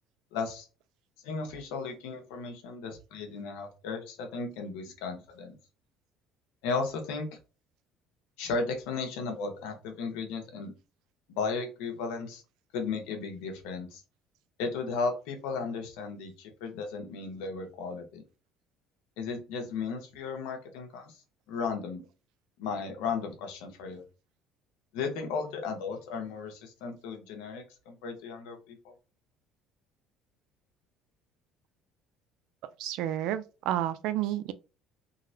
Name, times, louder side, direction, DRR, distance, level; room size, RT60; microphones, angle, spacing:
voice 1, 0.3-0.7 1.2-5.6 6.6-7.3 8.4-10.7 11.3-12.4 12.7-14.0 14.6-18.2 19.2-21.2 21.5-22.0 22.6-24.0 24.9-28.9, left 4 dB, 90° left, 1.0 m, -35 dB
voice 2, 32.8-34.5, right 12 dB, 75° right, 0.4 m, -30 dB
3.8 x 2.1 x 2.6 m
cardioid pair, 105°, 0 cm